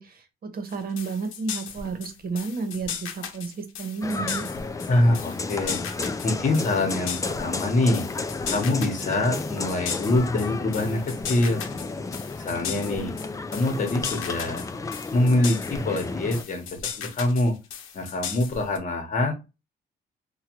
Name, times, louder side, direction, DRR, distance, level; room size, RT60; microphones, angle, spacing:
voice 1, 0.0-4.5, right 4 dB, 50° right, 7 dB, 1.0 m, -32 dB
sound 1, 0.7-18.8, left 7 dB, 85° left, 0.7 m, -37 dB
sound 2, 4.0-16.4, left 3 dB, 15° left, 0.3 m, -32 dB
voice 2, 4.9-5.8 6.2-8.0 8.5-11.6 12.4-13.1 13.5-14.6 15.1-17.6 17.9-19.3, left 2 dB, 40° left, 5 dB, 1.1 m, -24 dB
3.2 x 2.3 x 2.9 m, 0.26 s
cardioid pair, 90°, 20 cm